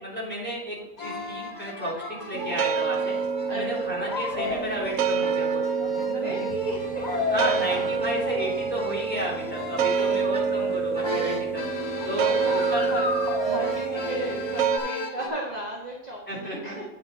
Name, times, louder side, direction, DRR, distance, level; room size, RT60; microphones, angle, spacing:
voice 1, 0.0-1.9 2.3-3.1 3.5-5.6 6.1-6.5 7.3-11.6 12.0-12.3 12.7-12.8 16.3-16.8, equal, 5° left, -6 dB, 3.1 m, -32 dB
sound 1, 1.0-15.3, left 2 dB, 30° left, 1.5 m, -34 dB
sound 2, 2.3-14.8, right 6 dB, 70° right, 0.9 m, -27 dB
voice 2, 6.1-7.8 10.0-10.3 10.6-10.7 12.1-12.6 12.9-13.0 13.5-16.8, right 1 dB, 30° right, -5 dB, 1.5 m, -35 dB
sound 3, 6.5-14.7, right 2 dB, 15° right, 2.4 m, -49 dB
9.2 x 6.0 x 4.1 m, 0.95 s
omnidirectional pair, 1.5 m